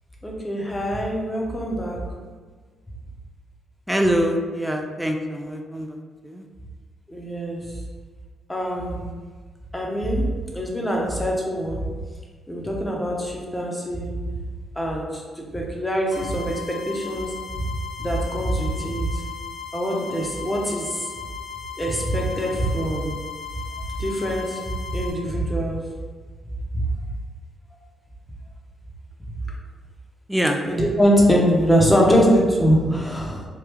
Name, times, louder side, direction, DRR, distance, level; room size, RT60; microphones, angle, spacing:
voice 1, 0.2-2.0 7.1-7.6 8.5-9.0 9.7-10.3 10.5-11.8 12.5-14.1 14.8-17.3 18.0-19.2 19.7-21.1 21.8-23.1 24.0-24.6 24.9-25.8 26.7-26.9 30.6-33.5, equal, 10° left, -2 dB, 0.8 m, -23 dB
voice 2, 3.9-5.9 6.2-6.4 30.3-30.6, equal, 5° right, 3 dB, 0.4 m, -24 dB
sound 1, 16.1-25.1, left 7 dB, 65° left, 0.7 m, -37 dB
3.0 x 2.3 x 3.4 m, 1.5 s
supercardioid pair, 70°, 0 cm